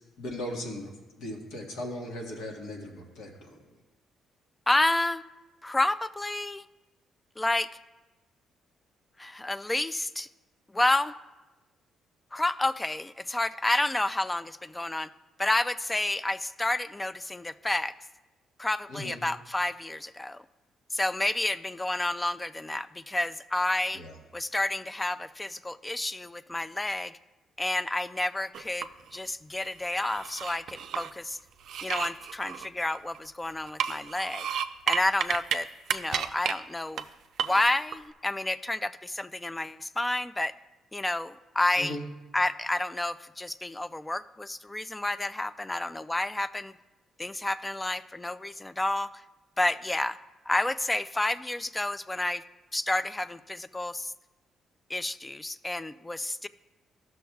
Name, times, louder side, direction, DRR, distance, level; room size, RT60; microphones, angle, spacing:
voice 1, 0.2-0.9 1.2-3.6 18.9-19.2 23.9-24.1 41.8-42.0, left 1 dB, 85° left, 0 dB, 1.4 m, -37 dB
voice 2, 4.7-5.2 5.6-6.7 7.4-7.7 9.2-10.3 10.7-11.1 12.3-15.1 15.4-17.9 18.6-20.4 20.9-24.0 24.3-27.2 27.6-31.4 31.8-34.5 34.9-37.0 37.4-40.6 40.9-42.0 42.3-46.7 47.2-49.1 49.6-50.2 50.5-52.4 52.7-54.1 54.9-56.5, left 2 dB, 15° left, 15 dB, 0.3 m, -30 dB
sound 1, 28.5-29.2 29.6-31.1 31.6-33.3 33.7-35.6 35.9-36.5 37.0-37.1 37.4-38.0, right 8 dB, 70° right, 0.4 m, -32 dB
14.0 x 6.2 x 2.3 m, 1.1 s
cardioid pair, 90°, 0 cm